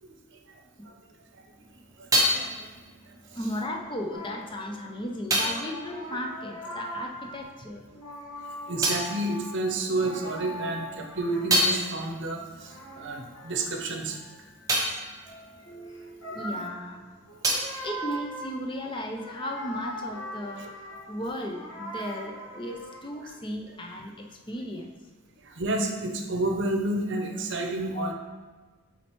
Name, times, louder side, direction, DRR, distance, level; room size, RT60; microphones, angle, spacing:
voice 1, 0.0-0.6 0.8-0.9 1.4-1.5 2.0-2.7 3.1-3.4 8.7-14.2 14.8-15.0 16.3-16.6 20.6-20.7 22.1-22.2 23.2-23.3 25.4-28.1, right 2 dB, 55° right, 2 dB, 0.7 m, -31 dB
sound 1, 1.3-7.3 7.5-10.2 10.7-16.7 16.9-19.0, equal, 15° right, 0.7 m, -31 dB
voice 2, 3.3-7.9 16.3-17.1 17.6-20.7 21.1-24.9 27.9-28.1, left 1 dB, 20° left, 2 dB, 0.5 m, -35 dB
sound 2, 4.1-5.0 5.3-7.6 7.9-12.2 12.5-23.2, equal, 75° left, 1.7 m, -41 dB
7.5 x 4.2 x 3.1 m, 1.3 s
head